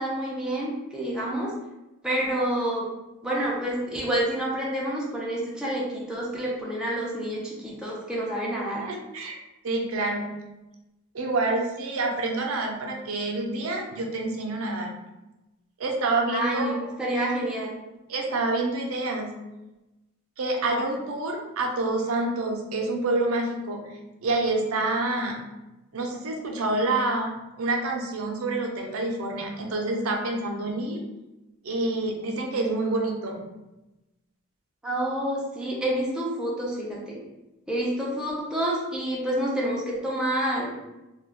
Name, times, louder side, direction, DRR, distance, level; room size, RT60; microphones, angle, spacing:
voice 1, 0.0-1.5 2.0-2.9 3.2-8.9 16.3-17.8 34.8-37.2 37.7-40.7, right 1 dB, 5° right, -5 dB, 0.5 m, -28 dB
voice 2, 8.8-9.4 9.6-10.4 11.1-14.9 15.8-16.8 18.1-19.3 20.4-25.4 25.9-31.0 31.6-33.5, right 2 dB, 80° right, 2 dB, 0.5 m, -27 dB
2.3 x 2.2 x 3.3 m, 1.0 s
head